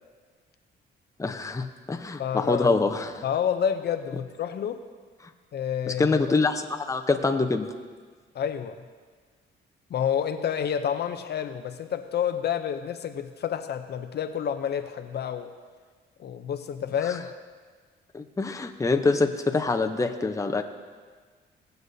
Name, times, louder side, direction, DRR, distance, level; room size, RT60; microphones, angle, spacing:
voice 1, 1.2-3.2 5.9-7.7 17.0-17.2 18.1-20.6, left 3 dB, 15° left, 5 dB, 0.7 m, -25 dB
voice 2, 2.2-2.7 3.2-4.8 5.5-6.2 8.3-8.8 9.9-15.5 16.2-17.3, left 8 dB, 55° left, 8 dB, 0.6 m, -29 dB
18.0 x 7.9 x 2.7 m, 1.5 s
cardioid pair, 90°, 20 cm